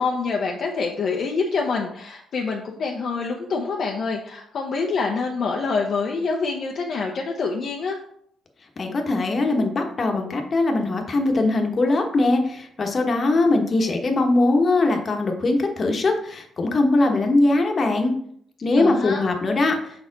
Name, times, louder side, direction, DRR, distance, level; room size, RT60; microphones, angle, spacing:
voice 1, 0.0-8.0 18.8-19.2, left 4 dB, 60° left, 0 dB, 0.7 m, -26 dB
voice 2, 8.8-18.1 18.6-19.8, left 2 dB, 40° left, 3 dB, 1.1 m, -21 dB
5.7 x 4.3 x 4.0 m, 0.67 s
cardioid pair, 90°, 0 cm